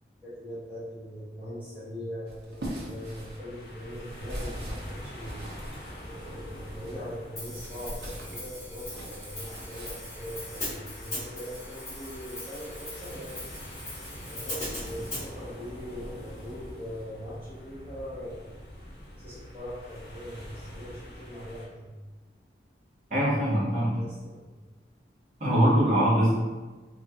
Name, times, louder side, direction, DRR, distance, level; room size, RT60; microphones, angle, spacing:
voice 1, 0.2-5.5 6.1-13.4 14.3-18.8 19.2-21.9 24.0-24.5, equal, 10° right, -11 dB, 0.6 m, -41 dB
sound 1, 2.3-7.0 7.5-10.0, right 1 dB, 70° right, 0.6 m, -41 dB
sound 2, 3.0-21.7, equal, 55° left, 0.7 m, -44 dB
Hi-hat, 7.4-15.3, left 1 dB, 15° left, 1.0 m, -40 dB
voice 2, 23.1-24.0 25.4-26.3, right 1 dB, 45° right, -8 dB, 1.1 m, -22 dB
2.9 x 2.4 x 2.7 m, 1.2 s
head